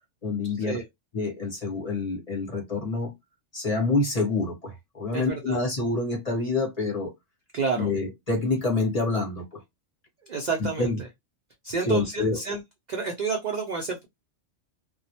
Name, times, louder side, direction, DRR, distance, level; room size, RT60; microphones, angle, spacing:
voice 1, 0.2-0.8 1.1-3.1 3.5-7.1 7.7-9.6 10.6-11.0 11.8-12.4, left 3 dB, 35° left, 0.9 m, -27 dB
voice 2, 5.1-5.6 7.5-7.9 10.3-10.9 11.6-12.6 12.9-14.1, right 5 dB, 65° right, 0.4 m, -30 dB
2.2 x 2.0 x 2.7 m
omnidirectional pair, 1.3 m